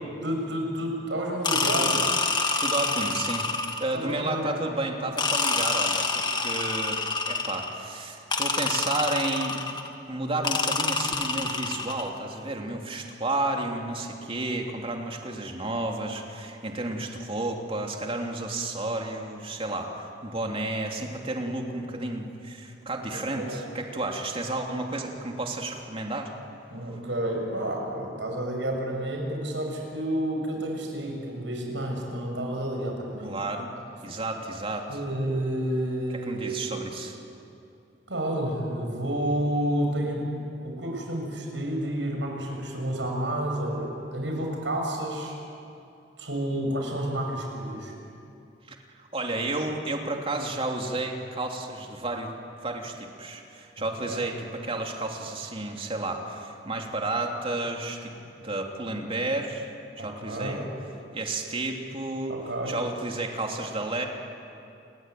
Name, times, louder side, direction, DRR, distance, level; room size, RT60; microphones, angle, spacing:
voice 1, 0.2-2.0 3.9-4.7 21.9-22.1 23.1-23.6 26.7-33.4 34.9-36.6 38.1-40.3 40.6-45.3 46.2-47.9 54.1-54.2 60.0-60.7 62.3-62.8, right 1 dB, 90° right, 1 dB, 7.0 m, -30 dB
sound 1, 1.4-4.0 5.2-7.8 8.3-9.9 10.4-12.1, left 3 dB, 25° left, 1.9 m, -27 dB
voice 2, 1.8-2.1 2.6-3.5 3.8-7.0 7.3-9.6 10.1-26.3 33.2-33.7 34.0-35.0 36.2-37.2 48.7-52.3 52.6-60.7 61.1-62.4 62.7-64.1, right 2 dB, 30° right, 2 dB, 3.1 m, -32 dB
29.5 x 21.5 x 9.3 m, 2.6 s
head